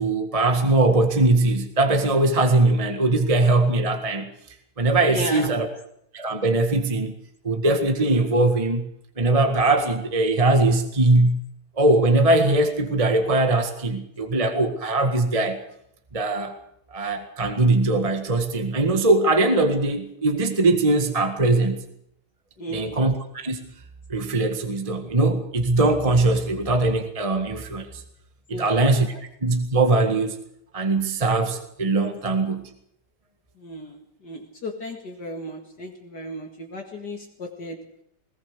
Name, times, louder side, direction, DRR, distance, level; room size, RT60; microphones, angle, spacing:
voice 1, 0.0-4.3 4.8-5.7 6.1-7.1 7.4-8.9 9.2-11.4 11.8-15.6 16.1-16.5 16.9-21.8 22.7-23.7 24.1-27.9 28.5-29.1 29.4-30.4 30.7-32.6, right 2 dB, 20° right, 6 dB, 1.7 m, -21 dB
voice 2, 5.1-5.6 22.6-23.0 28.5-28.9 33.6-37.9, equal, 55° left, 2 dB, 2.6 m, -34 dB
20.5 x 18.5 x 6.8 m, 0.73 s
omnidirectional pair, 2.2 m